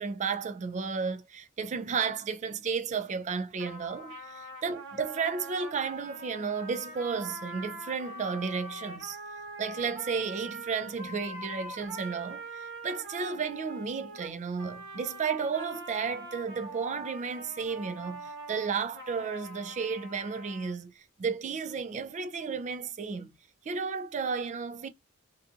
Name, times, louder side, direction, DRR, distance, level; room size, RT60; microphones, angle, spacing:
voice 1, 0.0-9.2 9.6-23.3 23.6-24.9, right 5 dB, 35° right, 0.4 m, -33 dB
sound 1, 3.6-20.7, right 2 dB, 60° right, 1.1 m, -43 dB
2.5 x 2.5 x 2.3 m
head